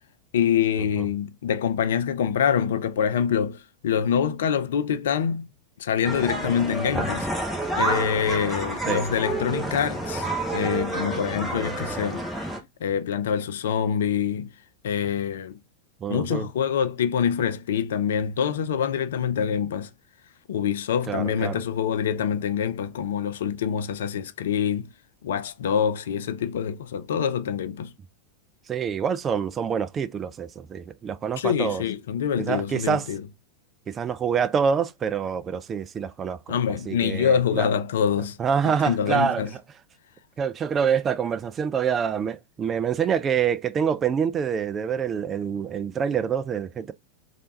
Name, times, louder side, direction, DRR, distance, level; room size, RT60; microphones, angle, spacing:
voice 1, 0.3-5.5 5.8-7.3 7.8-12.2 12.8-14.5 14.8-15.6 16.1-19.9 20.5-24.9 25.2-27.9 31.4-33.2 36.5-38.4 38.6-39.5, left 8 dB, 60° left, 0.4 m, -25 dB
sound 1, 6.0-12.6, right 2 dB, ahead, 0.9 m, -29 dB
voice 2, 16.0-16.5 21.1-21.6 28.7-31.8 32.4-33.1 33.9-36.6 36.9-37.7 38.4-39.6 40.4-46.9, right 7 dB, 25° right, 0.3 m, -26 dB
3.3 x 2.5 x 2.8 m
figure-of-eight pair, 90°, 0 cm